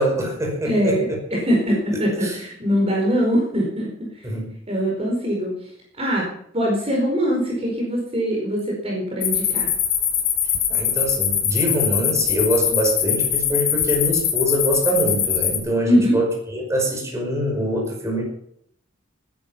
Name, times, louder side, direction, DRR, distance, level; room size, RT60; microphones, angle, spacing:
voice 1, 0.0-1.2 2.2-2.4 4.2-4.5 10.7-18.2, right 1 dB, 15° right, -1 dB, 5.3 m, -24 dB
voice 2, 0.6-4.1 4.7-5.6 6.0-9.7 15.9-16.2, equal, 30° right, -2 dB, 4.8 m, -22 dB
sound 1, 9.2-15.6, left 9 dB, 65° left, 4.2 m, -22 dB
19.0 x 10.5 x 5.6 m, 0.68 s
head